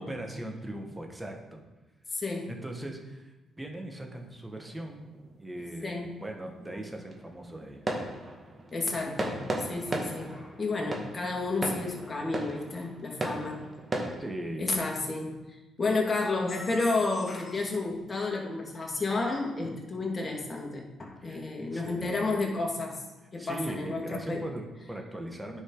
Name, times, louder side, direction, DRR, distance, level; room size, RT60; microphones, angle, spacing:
voice 1, 0.0-1.6 2.5-5.1 5.4-5.9 6.2-7.8 14.2-14.6 21.2-22.4 23.4-25.6, right 1 dB, 10° right, 2 dB, 1.8 m, -39 dB
voice 2, 2.1-2.5 5.8-6.1 8.7-13.6 14.6-15.4 15.8-23.0 23.3-24.4, left 3 dB, 35° left, 0 dB, 2.3 m, -31 dB
sound 1, 4.2-14.2, right 1 dB, 35° right, 1.8 m, -37 dB
9.6 x 5.6 x 4.0 m, 1.1 s
hypercardioid pair, 45°, 0 cm